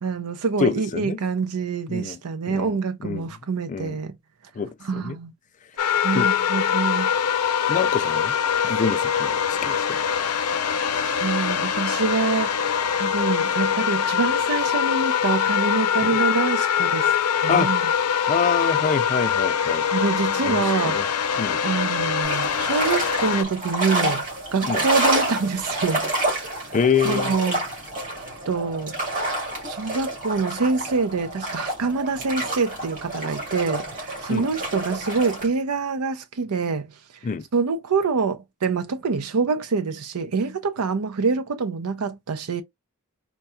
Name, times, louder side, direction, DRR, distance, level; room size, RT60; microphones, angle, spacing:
voice 1, 0.0-4.1 4.8-5.3 6.0-7.1 8.6-8.7 11.0-12.7 13.0-17.8 19.9-21.0 21.6-24.3 24.5-26.1 26.6-26.8 27.0-27.8 28.5-28.9 29.6-36.9 37.5-42.6, right 4 dB, 85° right, 0.6 m, -26 dB
voice 2, 0.6-1.2 1.9-2.2 2.5-2.8 3.0-3.3 3.7-4.0 4.6-5.2 6.1-6.3 7.7-8.3 8.7-10.0 16.0-16.2 17.5-17.7 18.3-19.8 20.4-21.0 21.4-21.6 24.6-24.9 26.7-27.3 34.3-34.5 37.2-37.5, left 5 dB, 35° left, 0.3 m, -26 dB
sound 1, 5.8-23.4, left 8 dB, 90° left, 0.5 m, -23 dB
sound 2, 22.2-35.5, right 1 dB, 35° right, 2.3 m, -28 dB
4.5 x 2.8 x 2.2 m
head